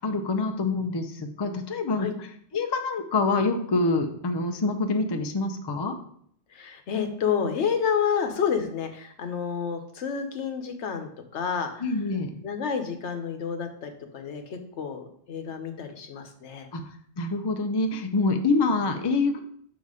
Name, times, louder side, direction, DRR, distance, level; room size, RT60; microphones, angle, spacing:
voice 1, 0.0-2.3 2.5-5.9 11.8-12.4 16.7-19.4, left 3 dB, 30° left, 6 dB, 0.5 m, -26 dB
voice 2, 6.5-11.8 12.4-16.7, left 7 dB, 85° left, 6 dB, 1.1 m, -29 dB
5.7 x 4.2 x 4.8 m, 0.64 s
omnidirectional pair, 1.1 m